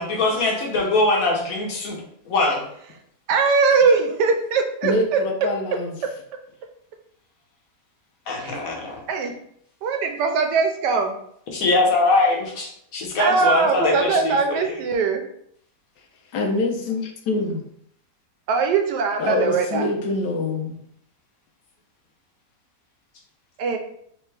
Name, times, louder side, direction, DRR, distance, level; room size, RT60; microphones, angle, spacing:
voice 1, 0.0-2.6 8.3-9.0 11.5-14.6, left 2 dB, 60° left, 0 dB, 1.2 m, -22 dB
voice 2, 3.3-5.2 8.4-8.6 9.1-9.3 9.8-11.2 13.2-15.2 18.5-19.9 23.6-23.8, right 4 dB, 85° right, 4 dB, 1.2 m, -21 dB
voice 3, 4.8-6.0 16.3-17.6 19.2-20.8, left 2 dB, 85° left, 3 dB, 1.4 m, -25 dB
3.5 x 3.4 x 3.2 m, 0.68 s
omnidirectional pair, 1.8 m